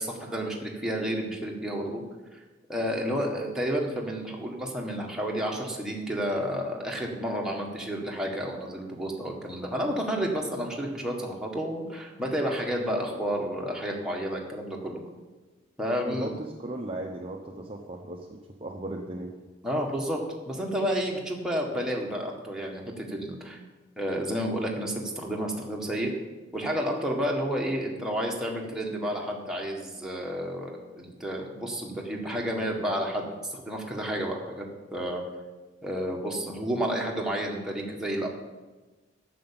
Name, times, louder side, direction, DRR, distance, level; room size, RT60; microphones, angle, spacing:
voice 1, 0.0-2.0 2.3-2.4 2.7-15.0 15.8-16.3 19.6-20.2 20.4-23.6 24.0-26.1 26.5-34.6 34.9-35.2 35.8-38.3, equal, 5° right, -2 dB, 1.7 m, -31 dB
voice 2, 16.1-19.3, right 1 dB, 30° right, 1 dB, 0.8 m, -37 dB
9.2 x 6.9 x 8.8 m, 1.2 s
head